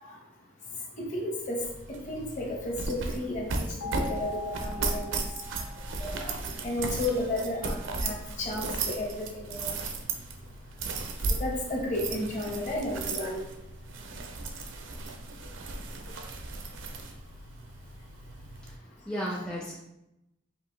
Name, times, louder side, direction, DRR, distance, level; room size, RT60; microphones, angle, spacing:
voice 1, 1.0-1.6 2.1-5.2 6.0-6.4 6.6-7.7 8.0-9.7 11.3-13.4, left 1 dB, 40° left, -3 dB, 1.0 m, -33 dB
sound 1, 1.6-18.8, right 3 dB, 75° right, 0.5 m, -36 dB
sound 2, 3.8-6.8, left 2 dB, 75° left, 0.5 m, -41 dB
voice 2, 18.6-19.8, equal, 5° left, -4 dB, 0.4 m, -35 dB
5.1 x 2.5 x 3.1 m, 0.88 s
head